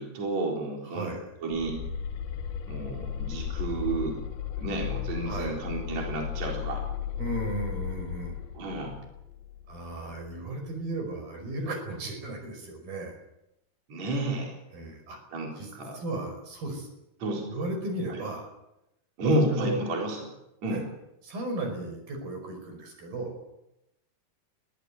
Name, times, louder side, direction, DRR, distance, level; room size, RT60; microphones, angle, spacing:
voice 1, 0.0-1.1 1.4-1.8 2.7-4.2 4.6-6.9 8.5-9.0 13.9-14.6 15.3-16.0 17.2-17.5 18.1-18.2 19.2-20.3 20.6-20.8, right 1 dB, 45° right, 0 dB, 5.2 m, -31 dB
voice 2, 0.9-1.3 5.2-5.6 7.2-8.4 9.7-13.2 14.7-15.2 15.6-16.9 17.5-18.5 19.3-19.8 20.7-20.8 21.2-23.4, right 2 dB, 65° right, 4 dB, 7.0 m, -35 dB
sound 1, 1.5-10.4, left 9 dB, 75° left, 3.0 m, -35 dB
22.0 x 16.5 x 9.4 m, 0.88 s
omnidirectional pair, 4.5 m